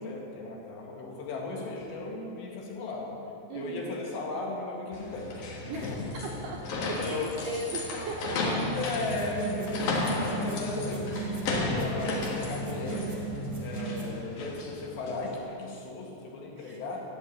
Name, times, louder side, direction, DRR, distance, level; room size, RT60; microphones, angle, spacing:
voice 1, 0.0-3.2 3.5-5.5 5.7-6.0 6.2-6.4 6.7-7.3 8.7-13.1 13.6-17.0, left 3 dB, 85° left, -2 dB, 4.2 m, -36 dB
voice 2, 3.5-3.8 5.7-8.9 14.1-14.2 16.6-16.8, right 3 dB, 75° right, 0 dB, 2.1 m, -38 dB
sound 1, 4.9-15.3, left 2 dB, 65° left, 3.2 m, -34 dB
sound 2, 9.0-14.2, right 3 dB, 20° right, 1.3 m, -36 dB
13.0 x 8.2 x 8.3 m, 2.9 s
omnidirectional pair, 4.8 m